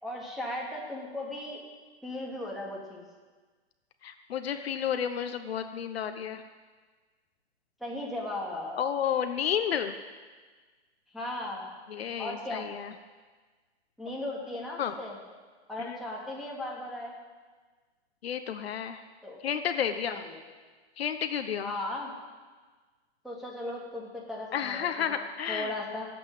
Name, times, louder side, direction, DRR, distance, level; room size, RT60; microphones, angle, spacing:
voice 1, 0.0-1.6 2.0-3.1 7.8-8.8 11.1-11.7 12.2-12.7 14.0-15.2 15.7-17.1 19.2-19.4 20.1-20.4 21.6-22.1 23.2-25.1 25.5-26.1, left 1 dB, ahead, -4 dB, 3.0 m, -37 dB
voice 2, 4.0-6.4 8.8-9.9 11.9-12.9 14.8-14.9 15.8-16.0 18.2-19.0 19.4-20.2 21.0-21.7 24.5-25.7, left 8 dB, 60° left, 8 dB, 1.1 m, -31 dB
16.0 x 8.3 x 9.2 m, 1.4 s
hypercardioid pair, 140°, 34 cm